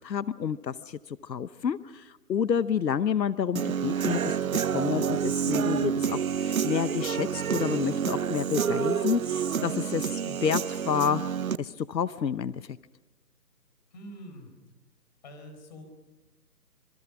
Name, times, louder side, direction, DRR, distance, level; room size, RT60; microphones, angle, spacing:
voice 1, 0.0-4.4 4.6-11.2 11.6-12.7, left 7 dB, 90° left, 16 dB, 0.9 m, -29 dB
Human voice / Guitar, 3.6-11.6, right 7 dB, 55° right, 0.8 m, -28 dB
voice 2, 13.9-14.5 15.2-15.8, equal, 25° left, 6 dB, 4.5 m, -45 dB
26.5 x 25.5 x 6.1 m, 1.1 s
hypercardioid pair, 170°, 49 cm